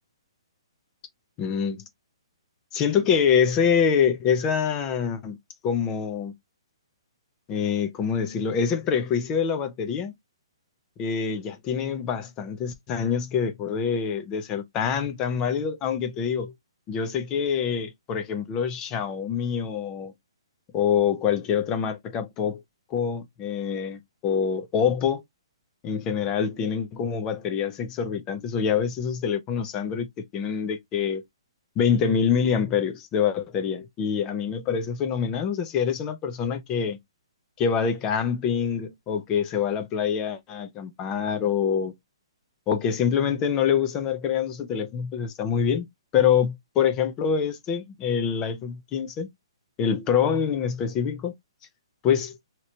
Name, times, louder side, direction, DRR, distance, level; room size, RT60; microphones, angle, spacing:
voice 1, 1.4-1.8 2.7-5.4 5.6-6.3 7.5-10.1 11.0-16.5 16.9-20.1 20.7-22.6 22.9-25.2 25.8-30.1 30.3-31.2 31.8-37.0 37.6-41.9 42.7-45.9 46.1-49.3 49.8-51.3 52.0-52.3, left 7 dB, 20° left, 0.5 m, -25 dB
3.1 x 2.9 x 2.6 m
hypercardioid pair, 160°, 3 cm